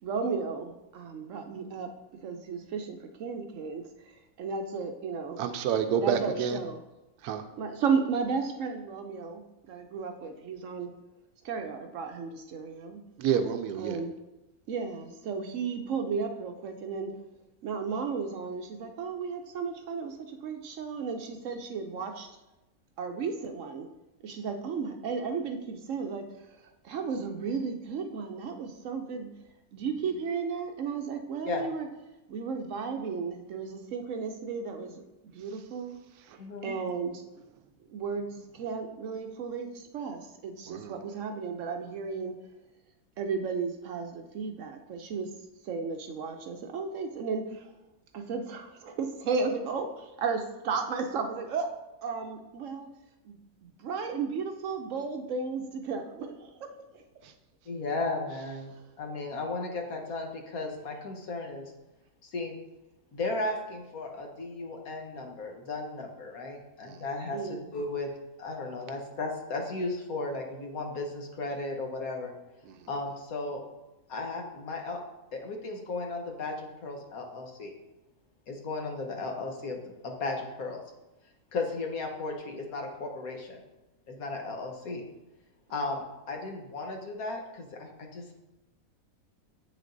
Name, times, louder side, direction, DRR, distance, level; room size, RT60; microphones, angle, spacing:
voice 1, 0.0-1.9 2.2-3.9 4.4-5.4 6.0-6.8 7.6-9.4 9.7-10.9 11.4-13.0 13.8-14.1 14.7-17.1 17.6-22.3 23.0-23.9 24.2-26.2 26.8-29.3 29.7-31.9 32.3-35.0 35.3-36.0 36.6-37.2 37.9-42.3 43.2-45.3 45.7-47.7 48.1-51.7 52.0-52.9 53.3-53.4 53.8-56.5 56.9-57.0 67.3-67.7, right 5 dB, 65° right, 5 dB, 0.9 m, -34 dB
voice 2, 5.4-6.6 7.2-7.4 13.2-14.0 40.7-40.9 66.9-67.0, right 7 dB, 90° right, 8 dB, 1.1 m, -28 dB
voice 3, 36.4-36.7 57.7-58.7 59.0-61.7 62.3-62.6 63.1-68.1 68.4-72.3 72.9-73.6 74.1-75.0 75.3-77.7 78.5-79.8 80.0-80.8 81.5-83.6 84.1-85.0 85.7-88.2, left 3 dB, 75° left, 2 dB, 1.5 m, -35 dB
8.1 x 6.4 x 2.6 m, 0.98 s
omnidirectional pair, 1.6 m